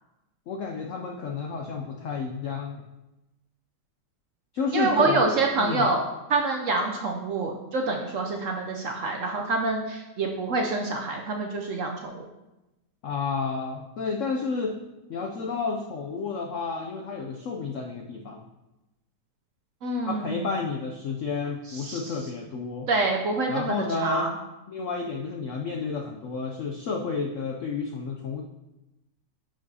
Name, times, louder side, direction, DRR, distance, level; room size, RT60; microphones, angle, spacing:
voice 1, 0.5-2.8 4.5-5.9 13.0-14.8 15.1-18.5 20.1-22.9 23.5-24.3 24.7-28.4, left 4 dB, 75° left, 2 dB, 0.7 m, -31 dB
voice 2, 4.7-6.0 6.3-12.2 19.8-20.5 21.7-22.1 22.9-23.8 24.0-24.3, right 3 dB, 65° right, 1 dB, 0.8 m, -26 dB
10.0 x 5.0 x 2.7 m, 0.99 s
omnidirectional pair, 1.9 m